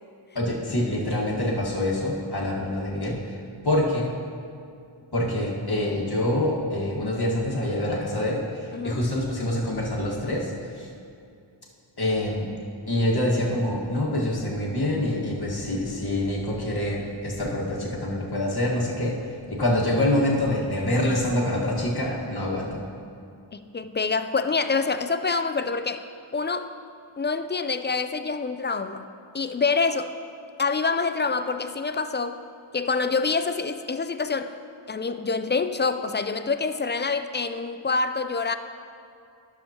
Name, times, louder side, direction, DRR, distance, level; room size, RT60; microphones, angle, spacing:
voice 1, 0.3-3.4 3.6-4.1 5.1-10.9 12.0-12.5 12.9-19.1 19.5-22.9, left 1 dB, 50° left, -4 dB, 1.7 m, -26 dB
voice 2, 23.5-26.0 26.3-26.7 27.2-29.1 29.3-30.2 30.6-32.4 32.7-34.5 34.9-38.6, left 4 dB, 25° left, 10 dB, 0.3 m, -26 dB
11.0 x 7.0 x 2.9 m, 2.5 s
cardioid pair, 40°, 49 cm